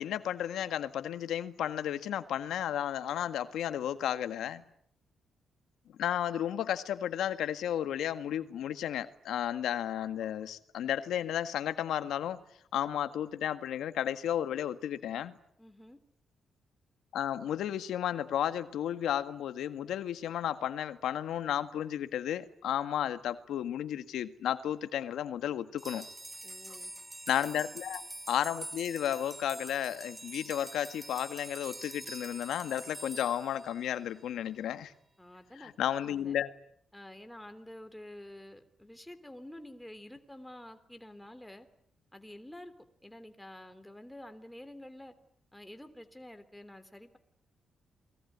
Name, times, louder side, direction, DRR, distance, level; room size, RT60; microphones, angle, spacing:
voice 1, 0.0-4.6 6.0-12.4 12.7-15.4 17.1-26.0 27.3-28.0 28.3-34.9 35.6-36.5, left 10 dB, 90° left, 1.7 m, -33 dB
voice 2, 15.6-16.0 26.4-26.9 27.5-27.7 35.2-36.4 36.9-41.7 42.1-42.7 43.0-45.1 45.5-47.2, left 1 dB, 5° left, 3.3 m, -49 dB
sound 1, 25.8-34.3, right 2 dB, 15° right, 1.4 m, -45 dB
29.0 x 21.0 x 9.5 m
cardioid pair, 140°, 0 cm